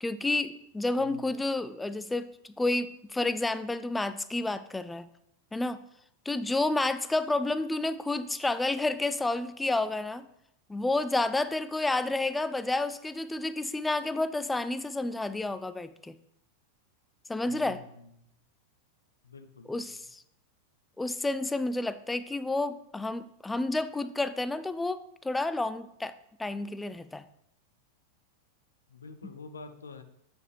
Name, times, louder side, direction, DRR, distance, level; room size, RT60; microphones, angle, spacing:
voice 1, 0.0-5.1 5.5-5.8 6.3-10.3 10.7-16.2 17.3-17.8 19.7-20.2 21.0-26.1 26.4-27.2, left 2 dB, 10° left, 13 dB, 0.3 m, -30 dB
voice 2, 1.0-1.3 17.5-18.1 19.2-19.8 28.9-30.0, left 4 dB, 75° left, 9 dB, 0.6 m, -47 dB
8.5 x 5.2 x 3.2 m, 0.76 s
figure-of-eight pair, 90°, 0 cm